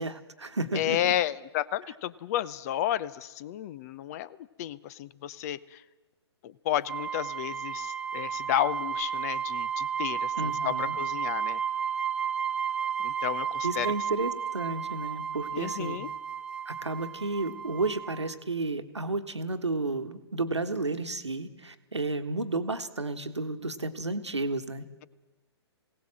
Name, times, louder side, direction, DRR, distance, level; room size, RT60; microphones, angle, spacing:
voice 1, 0.0-1.1 10.4-10.9 13.6-16.0 16.6-24.8, right 3 dB, 90° right, 7 dB, 1.4 m, -32 dB
voice 2, 0.7-5.8 6.4-11.6 13.0-13.9 15.5-16.1, left 12 dB, 35° left, 20 dB, 0.6 m, -32 dB
sound 1, 6.9-18.3, right 7 dB, 5° right, 0.9 m, -33 dB
20.0 x 17.5 x 7.5 m, 1.2 s
figure-of-eight pair, 125°, 14 cm